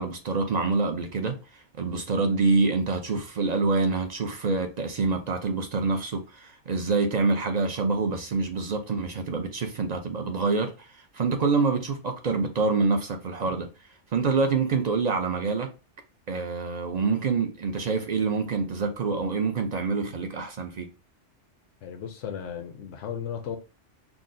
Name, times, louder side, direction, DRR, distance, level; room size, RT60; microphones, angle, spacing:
voice 1, 0.0-13.7 14.1-15.7 16.3-20.9, right 4 dB, 50° right, 0.5 m, -26 dB
voice 2, 21.8-23.6, left 8 dB, 75° left, 0.9 m, -35 dB
5.9 x 2.0 x 2.5 m
omnidirectional pair, 1.3 m